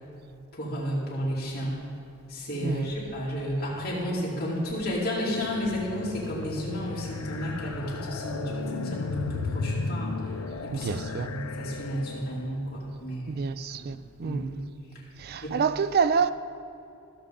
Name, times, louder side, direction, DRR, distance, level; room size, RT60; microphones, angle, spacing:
voice 1, 0.5-1.8 2.3-10.3 10.6-13.4 13.7-13.9 14.2-14.7 15.4-15.6, equal, 45° left, 2.7 m, -32 dB
sound 1, 5.2-12.6, left 4 dB, 80° left, 0.6 m, -35 dB
voice 2, 10.8-11.3 13.3-14.4 15.2-16.3, right 5 dB, 45° right, 0.3 m, -27 dB
15.0 x 7.0 x 3.8 m
head